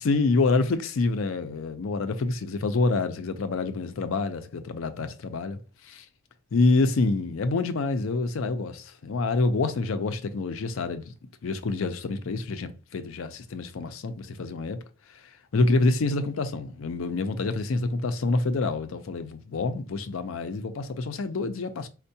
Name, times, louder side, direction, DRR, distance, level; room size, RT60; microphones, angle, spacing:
voice 1, 0.0-5.6 5.9-6.0 6.5-11.1 11.4-14.8 15.5-21.9, left 3 dB, 75° left, 0.5 m, -27 dB
4.4 x 2.1 x 2.7 m
head